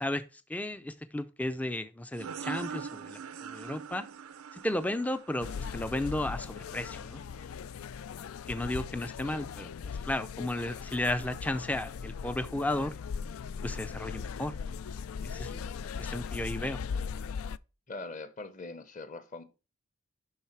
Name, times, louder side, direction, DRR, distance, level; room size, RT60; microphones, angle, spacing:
voice 1, 0.0-4.1 4.5-7.2 8.5-12.9 13.6-14.5 15.2-15.6 16.0-16.8, left 1 dB, 5° left, 0.4 m, -34 dB
sound 1, 2.1-7.5, right 7 dB, 85° right, 0.5 m, -43 dB
sound 2, 5.4-17.6, left 6 dB, 80° left, 0.4 m, -39 dB
voice 2, 17.9-19.4, left 3 dB, 35° left, 0.9 m, -42 dB
11.0 x 4.1 x 4.5 m
head